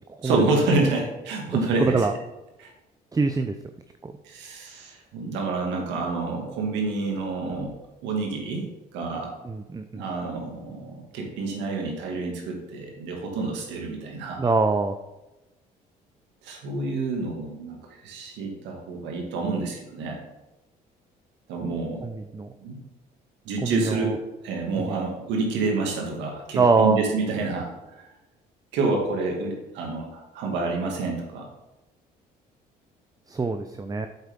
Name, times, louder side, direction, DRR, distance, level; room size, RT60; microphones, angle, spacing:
voice 1, 0.2-2.1 2.6-2.7 4.2-7.7 8.0-8.6 8.9-9.3 9.9-14.5 16.4-17.8 18.0-20.2 21.5-22.0 22.6-22.8 23.5-24.1 24.4-28.0 28.7-31.4, right 3 dB, 80° right, 0 dB, 2.2 m, -28 dB
voice 2, 1.8-2.1 3.1-3.5 4.0-4.1 9.4-10.0 14.4-15.0 22.0-22.5 23.6-24.2 24.8-25.0 26.6-27.0 33.3-34.1, right 4 dB, 20° right, 8 dB, 0.6 m, -24 dB
8.0 x 8.0 x 3.7 m, 1.0 s
supercardioid pair, 65°, 18 cm